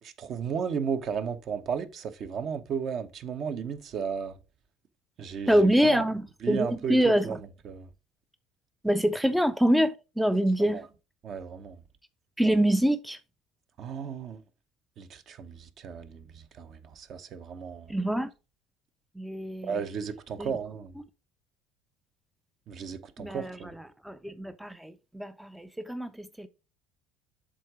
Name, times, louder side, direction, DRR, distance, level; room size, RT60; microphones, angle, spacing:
voice 1, 0.0-4.4 5.2-6.0 6.4-7.4 7.6-7.9 10.6-10.8 11.2-11.8 13.8-14.4 15.0-17.9 19.6-20.9 22.7-23.7, right 6 dB, 45° right, 0.8 m, -34 dB
voice 2, 5.5-7.4 8.8-10.8 12.4-13.2 17.9-18.3 19.2-19.8 20.4-20.5 23.2-23.7 24.0-26.5, equal, 5° right, 0.4 m, -25 dB
7.6 x 3.7 x 4.7 m
cardioid pair, 125°, 0 cm